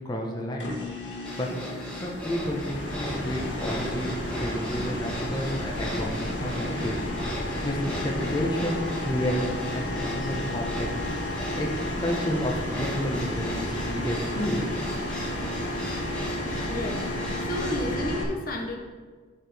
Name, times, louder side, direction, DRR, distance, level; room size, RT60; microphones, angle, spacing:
voice 1, 0.0-0.7 1.4-1.5 1.9-2.7 3.0-4.1 4.4-7.0 7.6-10.9 11.3-11.7 12.0-14.9, equal, 20° left, -1 dB, 1.1 m, -30 dB
sound 1, 0.6-18.2, left 1 dB, 80° left, 1.6 m, -32 dB
sound 2, 1.3-17.9, equal, 5° left, 1.5 m, -38 dB
voice 2, 16.4-17.1 17.4-18.8, left 1 dB, 50° left, 1 dB, 1.0 m, -32 dB
14.0 x 4.8 x 3.5 m, 1.5 s
head